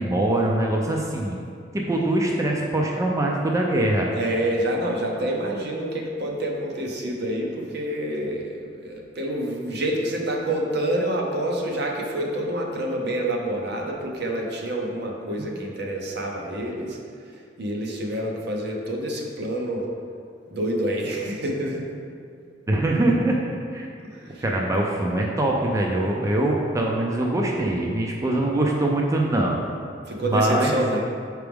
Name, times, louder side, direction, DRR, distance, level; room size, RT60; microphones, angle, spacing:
voice 1, 0.0-1.4 1.7-4.1 22.7-23.4 23.7-23.9 24.4-29.6 30.2-30.9, right 1 dB, 15° right, -1 dB, 0.4 m, -23 dB
voice 2, 4.1-17.0 17.6-19.9 20.5-21.8 24.1-24.4 30.0-31.0, right 1 dB, 60° right, 0 dB, 0.8 m, -27 dB
6.1 x 4.6 x 3.5 m, 2.4 s
head